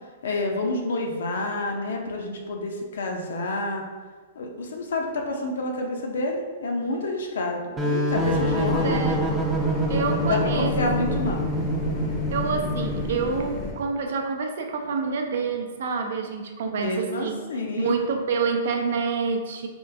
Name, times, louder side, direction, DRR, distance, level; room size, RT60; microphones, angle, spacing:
voice 1, 0.2-3.8 4.4-9.1 10.2-11.5 16.6-18.0, left 2 dB, 85° left, 2 dB, 0.5 m, -28 dB
sound 1, 7.8-13.3, equal, 10° right, 0.4 m, -26 dB
sound 2, 8.1-13.7, left 2 dB, 40° left, 0.6 m, -33 dB
voice 2, 8.6-9.2 9.9-10.8 12.3-17.4 17.8-19.7, right 5 dB, 70° right, 4 dB, 0.4 m, -27 dB
3.5 x 2.3 x 2.6 m, 1.4 s
hypercardioid pair, 145°, 0 cm